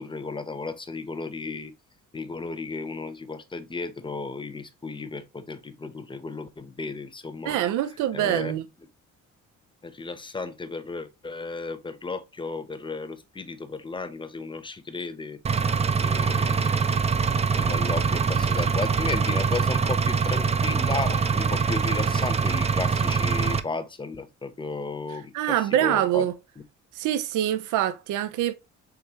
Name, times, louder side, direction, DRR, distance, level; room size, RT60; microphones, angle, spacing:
voice 1, 0.0-1.7 2.1-7.6 8.1-8.6 9.8-15.4 16.0-26.3, left 3 dB, 15° left, 0.7 m, -34 dB
voice 2, 7.4-8.6 25.3-26.3 26.9-28.5, right 12 dB, 85° right, 0.4 m, -25 dB
Engine, 15.4-23.6, right 5 dB, 20° right, 0.4 m, -24 dB
4.8 x 3.2 x 2.9 m
cardioid pair, 90°, 30 cm